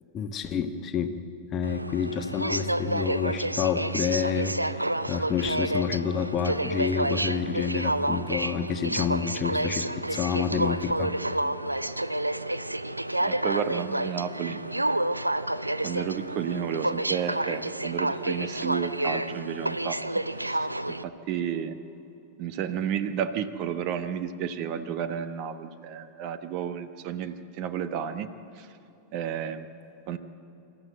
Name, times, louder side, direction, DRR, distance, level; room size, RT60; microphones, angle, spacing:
voice 1, 0.1-1.2 1.5-4.8 5.1-11.2, left 7 dB, 30° left, 8 dB, 1.2 m, -28 dB
Aircraft, 1.6-21.0, right 1 dB, 85° right, 0.5 m, -29 dB
voice 2, 13.2-14.6 15.8-20.0 20.4-20.7 21.0-21.8 22.4-28.3 28.6-28.7 29.1-29.7 30.1-30.2, right 8 dB, 40° right, 11 dB, 1.0 m, -32 dB
25.5 x 13.5 x 7.8 m, 2.9 s
figure-of-eight pair, 90°, 0 cm